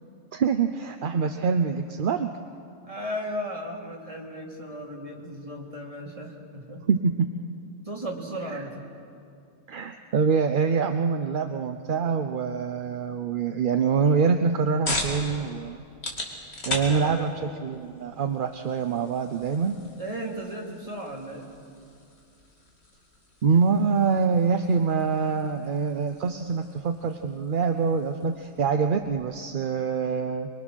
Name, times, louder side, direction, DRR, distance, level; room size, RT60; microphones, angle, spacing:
voice 1, 0.3-2.3 6.9-7.3 8.5-8.6 9.7-15.8 16.7-19.8 23.4-30.5, right 5 dB, 50° right, 7 dB, 0.7 m, -25 dB
voice 2, 2.8-6.8 7.8-8.8 16.9-17.3 20.0-21.5, equal, 25° right, -1 dB, 2.7 m, -35 dB
sound 1, 14.2-29.3, left 1 dB, 55° left, 2.8 m, -39 dB
23.5 x 23.5 x 6.2 m, 2.5 s
omnidirectional pair, 1.3 m